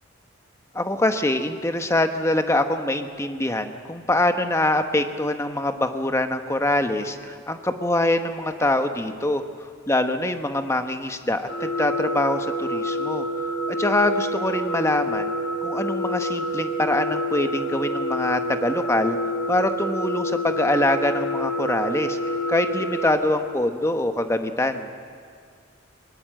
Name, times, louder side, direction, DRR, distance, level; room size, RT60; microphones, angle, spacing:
voice 1, 0.7-9.4 9.9-13.3 13.7-15.3 15.6-19.2 19.5-24.9, left 1 dB, 15° left, 7 dB, 1.0 m, -24 dB
sound 1, 11.5-23.1, equal, 80° left, 4.0 m, -27 dB
22.0 x 20.5 x 7.7 m, 2.1 s
head